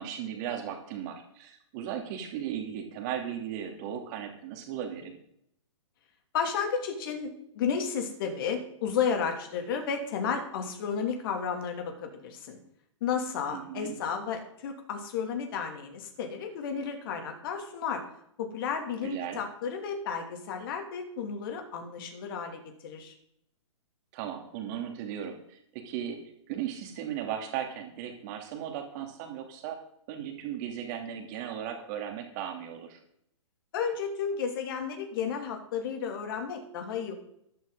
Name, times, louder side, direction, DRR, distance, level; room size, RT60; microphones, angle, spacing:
voice 1, 0.0-5.2 13.5-14.0 19.0-19.4 24.1-26.2 26.5-29.8 30.1-33.0, right 9 dB, 35° right, 4 dB, 2.9 m, -36 dB
voice 2, 6.3-12.6 13.0-18.0 18.4-23.1 33.7-37.1, left 6 dB, 45° left, 4 dB, 2.9 m, -32 dB
13.5 x 12.5 x 4.0 m, 0.71 s
figure-of-eight pair, 120°, 16 cm